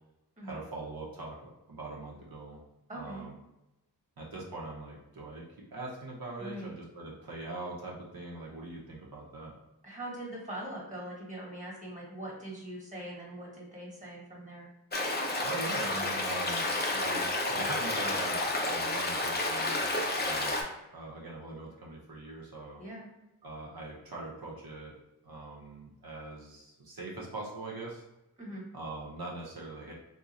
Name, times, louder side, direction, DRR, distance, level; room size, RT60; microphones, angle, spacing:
voice 1, 0.4-2.6 2.9-3.3 4.2-5.4 5.7-9.6 15.4-20.7 20.9-22.8 23.4-25.0 25.2-28.0 28.7-29.9, right 2 dB, 65° right, -3 dB, 0.8 m, -42 dB
voice 2, 2.9-3.3 6.4-6.7 9.8-14.7 22.8-23.1 28.4-28.6, right 1 dB, 20° right, -4 dB, 1.3 m, -42 dB
Stream, 14.9-20.6, left 2 dB, 25° left, 0.5 m, -30 dB
2.4 x 2.3 x 4.0 m, 0.92 s
wide cardioid pair, 95°, 39 cm